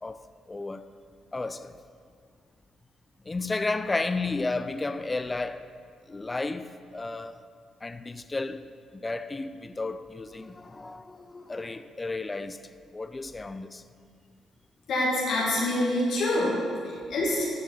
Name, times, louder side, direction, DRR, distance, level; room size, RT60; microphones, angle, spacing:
voice 1, 0.0-0.8 1.3-1.8 3.2-5.6 6.1-7.4 7.8-12.6 12.9-13.8, left 3 dB, 20° left, 0.4 m, -33 dB
voice 2, 14.9-17.5, left 1 dB, 65° left, 2.0 m, -26 dB
11.0 x 6.8 x 4.0 m
cardioid pair, 90°, 0 cm